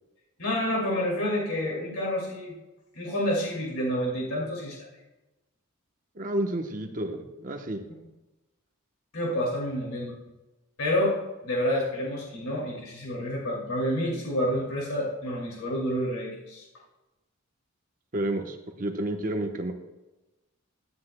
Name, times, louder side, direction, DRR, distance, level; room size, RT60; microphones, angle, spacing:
voice 1, 0.4-2.5 2.9-4.8 9.1-10.1 10.8-16.6, equal, 85° left, -3 dB, 2.5 m, -29 dB
voice 2, 6.2-7.8 18.1-19.7, right 1 dB, 35° right, 4 dB, 0.9 m, -30 dB
15.5 x 9.9 x 2.2 m, 1.1 s
head